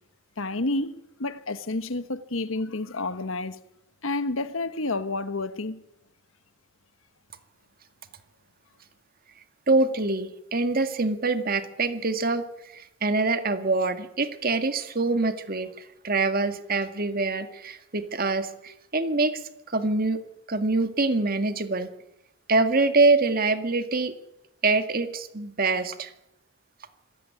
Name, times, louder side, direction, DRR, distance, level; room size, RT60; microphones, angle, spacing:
voice 1, 0.4-3.6 4.0-5.8, left 2 dB, 70° left, 1.3 m, -30 dB
voice 2, 9.7-12.4 12.7-20.2 20.5-21.9 22.5-24.1 24.6-26.1, right 3 dB, 45° right, 1.9 m, -25 dB
25.5 x 16.0 x 9.6 m
head